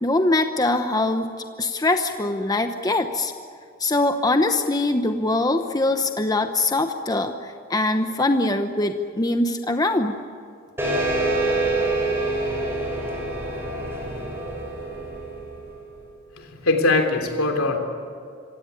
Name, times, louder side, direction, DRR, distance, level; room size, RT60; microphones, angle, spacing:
voice 1, 0.0-1.3 1.6-3.3 3.8-10.2, left 2 dB, 20° left, 6 dB, 0.9 m, -22 dB
sound 1, 10.8-15.9, right 2 dB, 10° right, 6.3 m, -26 dB
voice 2, 16.4-17.8, left 2 dB, 70° left, 5 dB, 3.3 m, -21 dB
26.0 x 17.0 x 9.7 m, 2.3 s
head